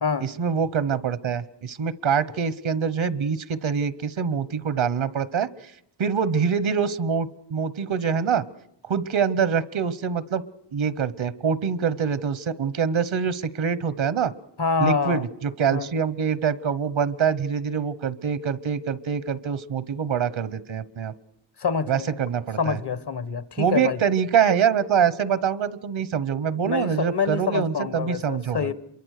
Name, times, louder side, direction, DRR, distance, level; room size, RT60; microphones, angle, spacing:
voice 1, 0.2-5.7 6.0-8.4 8.8-10.4 10.7-14.3 14.8-21.1 21.9-22.8 23.6-28.7, right 7 dB, 90° right, 1.1 m, -25 dB
voice 2, 14.6-15.2 15.7-15.9 21.6-22.1 22.6-24.0 26.6-28.7, left 5 dB, 60° left, 1.3 m, -26 dB
27.0 x 23.5 x 6.6 m
wide cardioid pair, 80°, 45 cm